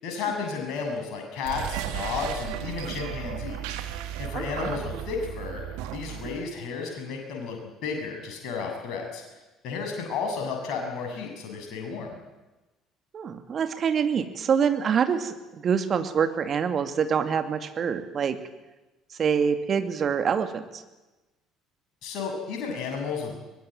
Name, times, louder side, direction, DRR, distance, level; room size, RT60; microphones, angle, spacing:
voice 1, 0.0-3.8 4.2-5.6 5.9-9.2 9.6-12.2 22.0-23.4, left 5 dB, 55° left, 2 dB, 7.4 m, -32 dB
sound 1, 1.4-6.4, right 11 dB, 65° right, 1.9 m, -35 dB
voice 2, 4.3-4.7 13.1-18.4 19.2-20.8, right 7 dB, 40° right, 8 dB, 2.4 m, -26 dB
23.0 x 20.0 x 9.2 m, 1.1 s
figure-of-eight pair, 55°, 0 cm